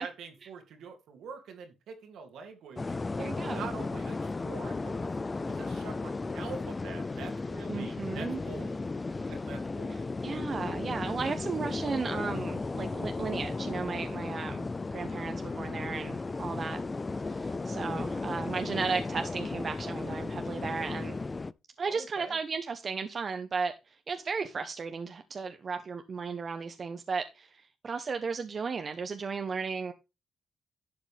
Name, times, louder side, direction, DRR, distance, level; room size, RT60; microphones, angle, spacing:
voice 1, 0.0-3.0 3.5-8.8 9.3-10.1 21.9-22.4, right 5 dB, 85° right, 2.6 m, -45 dB
sound 1, 2.8-21.5, left 3 dB, 25° left, 0.4 m, -35 dB
voice 2, 3.2-3.7 7.7-8.4 10.2-16.8 17.2-21.2 21.8-29.9, right 5 dB, 45° right, 1.0 m, -35 dB
11.5 x 8.0 x 3.4 m
cardioid pair, 100°, 0 cm